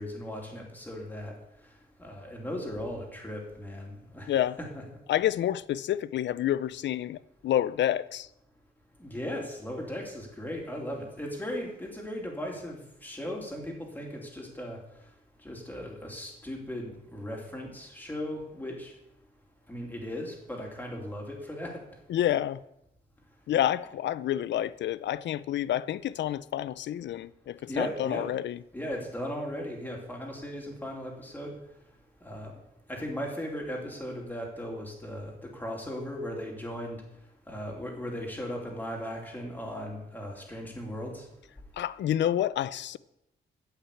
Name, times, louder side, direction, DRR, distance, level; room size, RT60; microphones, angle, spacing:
voice 1, 0.0-1.3 2.0-4.3 4.6-4.8 9.0-14.8 15.4-18.9 19.7-21.8 27.7-28.3 28.7-31.5 32.2-32.5 32.9-37.0 37.5-41.3, equal, 10° left, 2.7 m, -37 dB
voice 2, 4.3-4.6 5.1-8.3 22.1-22.6 23.5-28.6 41.8-43.0, left 11 dB, 70° left, 0.4 m, -29 dB
14.0 x 5.8 x 8.4 m
wide cardioid pair, 155°, 19 cm